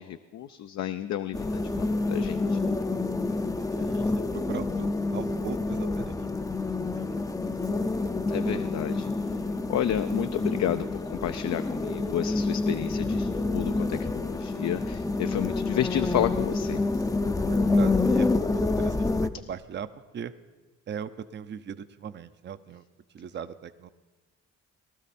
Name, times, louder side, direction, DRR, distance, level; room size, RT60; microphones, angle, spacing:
voice 1, 0.0-2.8 8.3-9.1 9.7-16.8, left 11 dB, 65° left, 9 dB, 0.5 m, -31 dB
sound 1, 1.3-19.3, left 3 dB, 10° left, 0.5 m, -28 dB
voice 2, 3.2-4.9 5.1-6.3 6.7-7.3 17.0-19.9 20.1-20.3 20.9-22.8 23.1-23.9, right 8 dB, 35° right, 12 dB, 0.6 m, -40 dB
19.0 x 12.5 x 4.2 m, 1.3 s
cardioid pair, 90°, 30 cm